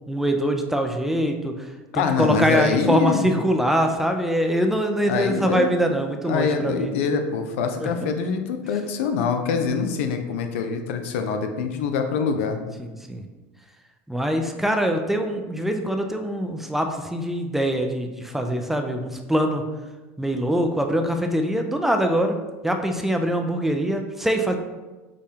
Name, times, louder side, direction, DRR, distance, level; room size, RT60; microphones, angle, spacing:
voice 1, 0.1-6.9 7.8-7.9 12.8-13.2 14.1-19.6 20.2-22.4 22.6-24.6, equal, 5° right, 4 dB, 0.3 m, -23 dB
voice 2, 1.9-3.3 5.0-5.7 6.2-12.6, left 5 dB, 80° left, 6 dB, 0.4 m, -24 dB
4.9 x 2.2 x 2.7 m, 1.2 s
supercardioid pair, 115°, 7 cm